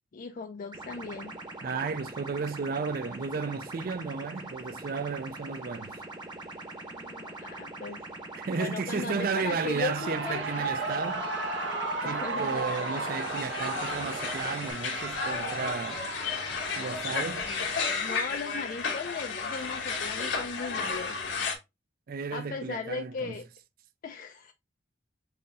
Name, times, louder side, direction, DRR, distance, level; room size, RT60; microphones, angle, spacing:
voice 1, 0.1-1.4 6.9-8.0 8.5-10.4 12.0-12.6 13.1-13.2 17.4-21.2 22.3-23.4 24.0-24.5, left 4 dB, 50° left, 0.4 m, -37 dB
sound 1, 0.7-14.7, right 2 dB, 25° right, 0.9 m, -42 dB
voice 2, 1.6-5.9 8.3-11.3 12.0-16.1 16.8-17.5 22.1-23.4, right 5 dB, 55° right, 0.4 m, -33 dB
Shout / Cheering, 9.2-18.2, right 3 dB, 75° right, 1.1 m, -35 dB
sound 2, 12.3-21.5, left 5 dB, 85° left, 1.3 m, -33 dB
5.5 x 2.7 x 2.7 m
head